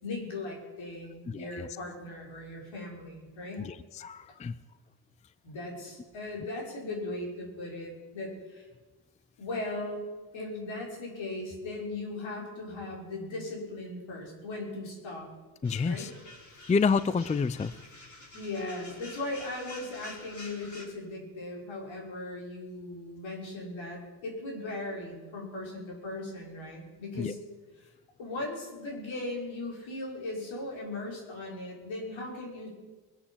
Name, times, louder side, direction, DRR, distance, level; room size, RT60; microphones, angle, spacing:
voice 1, 0.0-3.7 5.4-8.7 9.4-10.0 10.3-15.3 15.8-16.1 18.3-27.4 28.2-32.7, left 2 dB, 65° left, -1 dB, 5.8 m, -38 dB
voice 2, 1.3-1.8 3.6-4.5 15.6-16.1 16.7-17.7 27.2-27.3, left 5 dB, 15° left, 16 dB, 0.4 m, -29 dB
sound 1, 15.6-20.8, left 2 dB, 35° left, 4.9 m, -49 dB
21.0 x 8.5 x 7.3 m, 1.2 s
supercardioid pair, 70°, 49 cm